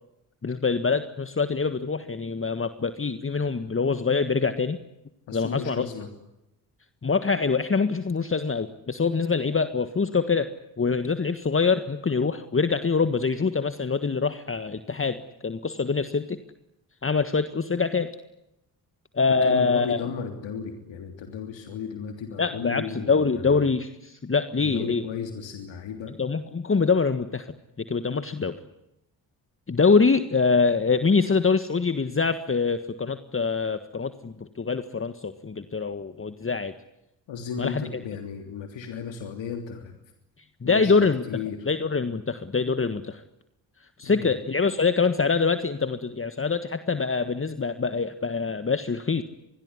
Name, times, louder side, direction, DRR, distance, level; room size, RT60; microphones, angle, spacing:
voice 1, 0.4-4.8 5.3-5.8 7.0-10.5 10.8-16.4 17.0-18.1 19.1-20.0 22.4-25.0 26.2-28.6 29.7-36.7 37.6-37.8 40.6-41.2 41.7-43.2 44.0-49.2, left 4 dB, 25° left, 10 dB, 1.6 m, -24 dB
voice 2, 5.3-6.1 19.3-23.7 24.6-26.1 37.3-39.9 40.6-41.7 44.0-44.4, left 6 dB, 65° left, 5 dB, 3.4 m, -35 dB
26.0 x 21.5 x 9.9 m, 0.87 s
hypercardioid pair, 45°, 49 cm